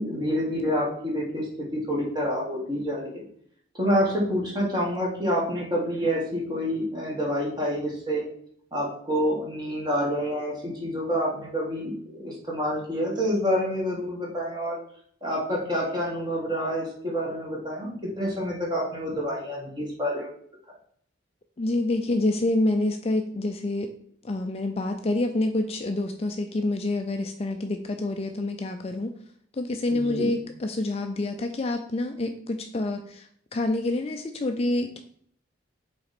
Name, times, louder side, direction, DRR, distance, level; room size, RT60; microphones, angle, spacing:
voice 1, 0.0-1.5 1.7-3.2 3.7-8.3 8.7-14.8 15.2-20.3 29.9-30.3, equal, 20° right, -3 dB, 1.8 m, -28 dB
voice 2, 21.6-23.9 24.2-29.1 29.5-35.0, left 2 dB, 30° left, 6 dB, 0.4 m, -27 dB
5.7 x 4.1 x 4.2 m, 0.63 s
head